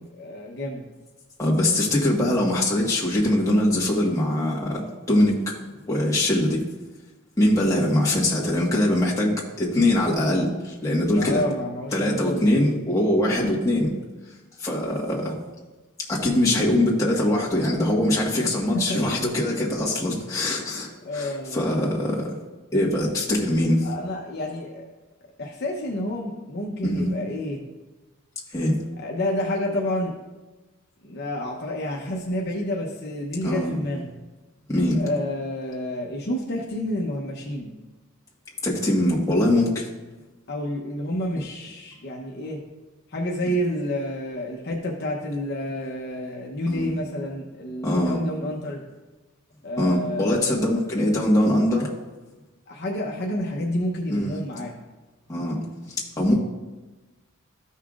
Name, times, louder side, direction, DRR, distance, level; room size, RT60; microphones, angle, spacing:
voice 1, 0.1-0.9 11.1-12.4 18.4-19.0 21.0-21.8 23.8-24.8 25.4-27.6 29.0-30.1 31.0-34.1 35.0-37.7 40.5-42.6 43.1-48.8 49.6-50.8 52.7-54.7, left 1 dB, 50° left, -1 dB, 0.8 m, -29 dB
voice 2, 1.4-5.5 5.9-6.6 7.4-11.4 11.9-13.9 14.6-15.4 16.1-22.3 22.7-23.9 26.8-27.1 28.5-28.7 33.4-33.8 34.7-35.0 38.6-39.9 46.7-46.9 47.8-48.2 49.8-51.9 54.1-54.3 55.3-55.6 55.9-56.3, left 1 dB, 15° left, -5 dB, 1.4 m, -22 dB
13.5 x 5.6 x 2.5 m, 1.2 s
head